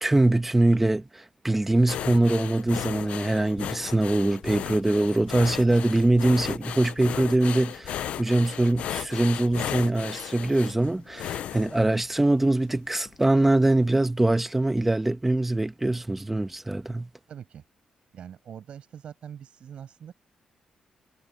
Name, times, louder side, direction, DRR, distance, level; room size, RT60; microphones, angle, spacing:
voice 1, 0.0-17.1, right 2 dB, 10° right, 1.2 m, -23 dB
sound 1, 1.9-12.5 12.9-13.1 13.5-13.6, left 11 dB, 75° left, 0.5 m, -35 dB
voice 2, 17.3-17.6 18.1-20.1, right 8 dB, 55° right, 6.5 m, -43 dB
cardioid pair, 150°, 2 cm